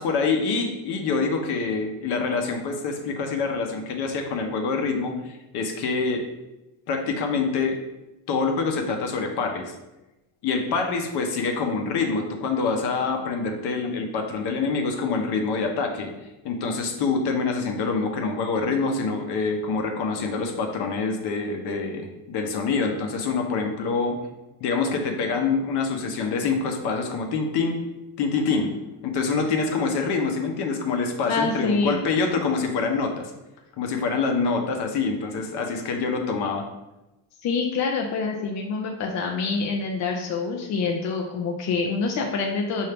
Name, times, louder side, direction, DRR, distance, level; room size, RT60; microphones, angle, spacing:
voice 1, 0.0-6.2 6.9-7.8 8.3-9.7 10.4-16.1 16.4-24.2 24.6-27.8 28.2-28.7 29.0-33.3 33.8-36.6, left 4 dB, 55° left, 3 dB, 0.9 m, -26 dB
voice 2, 31.3-32.0 37.4-42.9, left 4 dB, 40° left, 1 dB, 0.5 m, -26 dB
5.5 x 2.7 x 3.4 m, 1.0 s
cardioid pair, 125°, 47 cm